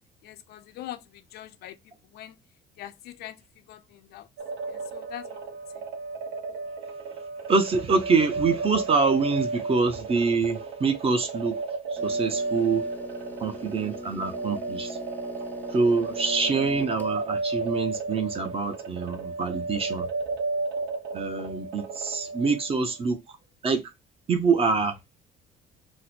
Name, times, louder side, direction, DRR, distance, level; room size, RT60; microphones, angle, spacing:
voice 1, 0.2-1.0 1.3-1.8 2.1-2.3 2.8-3.4 3.7-4.3 4.7-5.4, left 13 dB, 75° left, 0.4 m, -42 dB
sound 1, 4.4-22.8, right 3 dB, 90° right, 0.8 m, -33 dB
voice 2, 7.5-11.6 11.9-12.8 13.4-15.0 15.7-20.1 21.1-23.4 23.6-23.8 24.3-25.0, right 4 dB, 35° right, 0.6 m, -25 dB
sound 2, 12.0-17.2, left 3 dB, 10° left, 0.3 m, -42 dB
2.9 x 2.0 x 4.1 m
cardioid pair, 110°, 17 cm